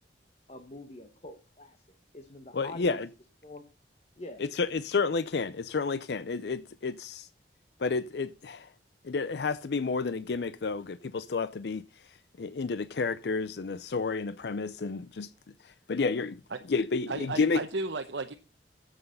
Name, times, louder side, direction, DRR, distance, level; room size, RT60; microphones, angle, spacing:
voice 1, 0.5-1.8 2.1-3.0 3.4-3.6 4.2-4.4, left 2 dB, 35° left, 1.2 m, -45 dB
voice 2, 2.5-3.1 4.4-7.3 7.8-8.7 9.0-11.8 12.4-15.3 15.9-16.4 16.7-17.6, left 4 dB, 60° left, 0.5 m, -30 dB
voice 3, 17.1-18.3, right 3 dB, 75° right, 0.9 m, -34 dB
9.6 x 8.1 x 6.7 m
head